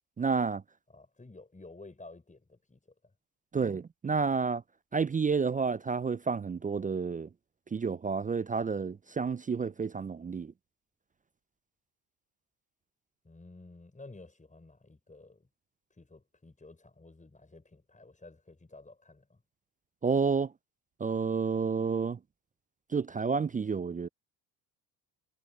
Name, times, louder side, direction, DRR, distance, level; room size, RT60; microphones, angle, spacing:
voice 1, 0.2-0.6 3.5-4.6 4.9-7.3 7.7-10.5 20.0-20.5 21.0-22.2 22.9-24.1, right 5 dB, 15° right, 0.5 m, -30 dB
voice 2, 0.9-2.8 13.2-15.5 15.9-19.4, left 2 dB, 15° left, 6.7 m, -52 dB
hypercardioid pair, 60°, 48 cm